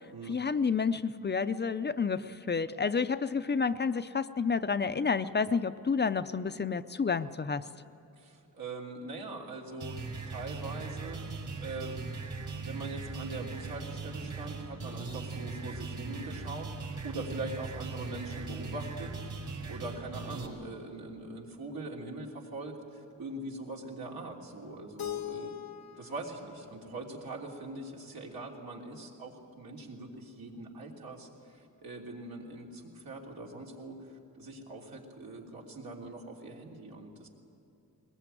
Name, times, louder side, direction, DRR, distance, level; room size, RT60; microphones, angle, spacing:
voice 1, 0.3-7.7, left 5 dB, 30° left, 12 dB, 0.5 m, -30 dB
voice 2, 8.2-10.0 10.3-11.2 11.6-12.0 12.6-25.5 26.0-37.3, right 2 dB, 90° right, -1 dB, 3.4 m, -42 dB
sound 1, 9.8-20.5, right 4 dB, 60° right, 4.8 m, -39 dB
Keyboard (musical), 25.0-27.9, left 11 dB, 90° left, 1.1 m, -42 dB
21.0 x 20.5 x 9.1 m, 2.8 s
wide cardioid pair, 130°, 35 cm